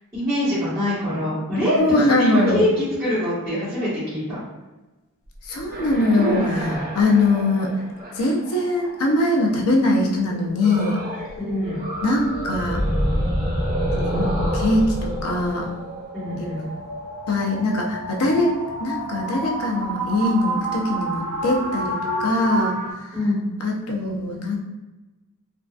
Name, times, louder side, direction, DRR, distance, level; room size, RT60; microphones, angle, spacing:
voice 1, 0.1-4.4 6.2-6.8 11.4-11.8 16.1-16.7 23.1-23.5, left 1 dB, 15° right, -17 dB, 1.3 m, -24 dB
voice 2, 1.8-2.6 5.4-7.7 8.1-11.0 12.0-12.8 14.0-15.7 16.4-16.5 17.3-23.2 23.6-24.6, left 2 dB, 80° left, 0 dB, 0.6 m, -22 dB
sound 1, 5.3-9.5 10.6-11.4 11.6-16.5, equal, 40° right, 0.7 m, -28 dB
sound 2, 9.8-22.9, right 1 dB, 65° right, 1.3 m, -31 dB
3.8 x 2.3 x 2.4 m, 1.1 s
head